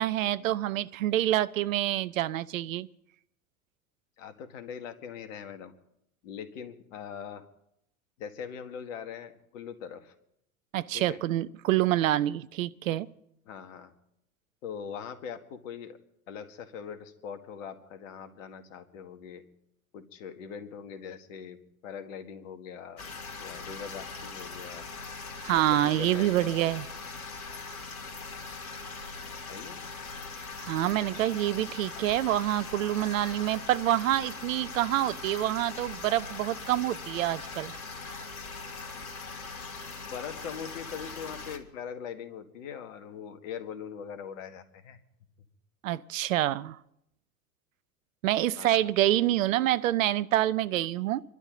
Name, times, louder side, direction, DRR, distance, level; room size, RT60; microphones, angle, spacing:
voice 1, 0.0-2.9 10.7-13.1 25.4-26.9 30.6-37.7 45.8-46.8 48.2-51.2, right 13 dB, 65° right, 0.7 m, -27 dB
voice 2, 4.2-5.7 6.2-7.4 8.2-10.1 10.9-11.2 13.5-13.9 14.6-16.0 16.3-19.4 19.9-21.6 21.8-23.0 23.4-24.8 25.5-26.5 29.5-29.8 31.1-31.2 31.9-32.0 40.0-45.0 48.6-48.8, left 7 dB, 60° left, 2.0 m, -41 dB
sound 1, 23.0-41.6, left 4 dB, 75° left, 2.1 m, -41 dB
28.0 x 12.0 x 3.9 m
figure-of-eight pair, 80°, 43 cm